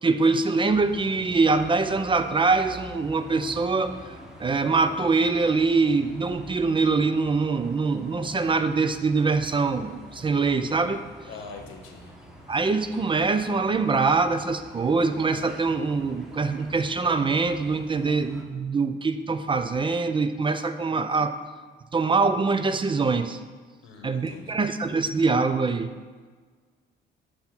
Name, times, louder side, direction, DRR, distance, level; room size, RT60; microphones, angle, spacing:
voice 1, 0.0-4.1 4.4-11.0 12.5-21.3 21.9-23.4 24.0-25.9, right 4 dB, 25° right, 10 dB, 0.4 m, -24 dB
sound 1, 0.7-18.5, equal, 5° right, 1.0 m, -47 dB
voice 2, 11.3-12.1 23.8-24.6, left 4 dB, 85° left, 4 dB, 1.0 m, -43 dB
7.6 x 2.9 x 5.9 m, 1.5 s
cardioid pair, 90°, 20 cm